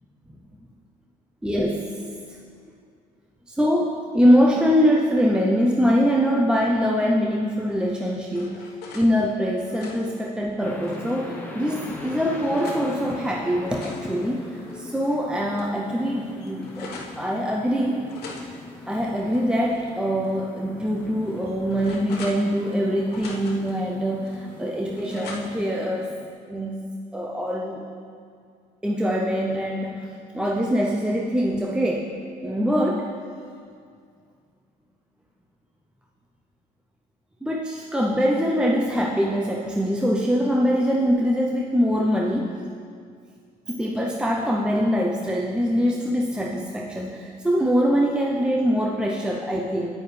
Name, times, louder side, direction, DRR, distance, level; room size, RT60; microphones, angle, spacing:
voice 1, 1.4-2.0 3.5-14.5 14.7-18.0 18.9-26.1 26.5-27.8 28.8-33.1 37.4-42.6 43.7-50.0, equal, 5° right, -1 dB, 0.6 m, -23 dB
sound 1, 7.8-9.1 9.5-11.2 11.7-12.9 13.4-15.2 15.5-15.6 15.9-17.2 18.1-19.9 20.2-20.4 21.0-22.8 23.1-23.8 24.2-25.7, left 3 dB, 70° left, 1.2 m, -43 dB
sound 2, 10.6-26.3, left 2 dB, 10° left, 0.9 m, -40 dB
9.3 x 9.0 x 3.3 m, 2.2 s
cardioid pair, 110°, 17 cm